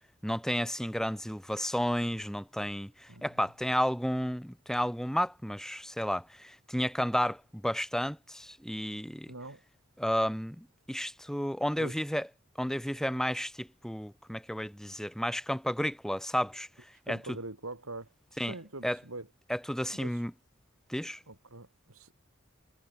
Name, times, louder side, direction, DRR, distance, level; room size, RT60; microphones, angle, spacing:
voice 1, 0.2-9.3 10.0-12.3 12.6-16.7 17.1-17.4 18.4-18.5 18.8-19.0 19.5-20.3 20.9-21.2, equal, ahead, 3.4 m, -32 dB
voice 2, 9.3-9.6 11.8-12.0 17.1-19.3 20.0-20.2 21.3-22.1, right 2 dB, 80° right, 4.5 m, -43 dB
head